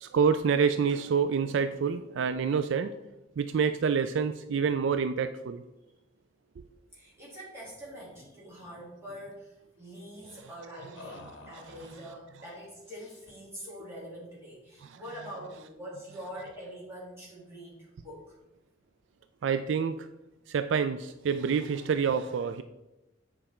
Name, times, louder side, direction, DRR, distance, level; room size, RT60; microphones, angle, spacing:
voice 1, 0.0-3.0 3.4-5.6 6.6-6.7 10.3-10.4 11.5-11.7 14.8-15.0 19.4-20.1 20.5-22.6, right 6 dB, 65° right, 10 dB, 0.3 m, -27 dB
voice 2, 6.9-18.4, equal, 10° right, -6 dB, 2.6 m, -45 dB
sound 1, 7.6-8.3 8.6-9.4 11.0-12.2 12.8-13.5, left 3 dB, 65° left, 1.0 m, -51 dB
7.8 x 4.9 x 4.3 m, 0.97 s
head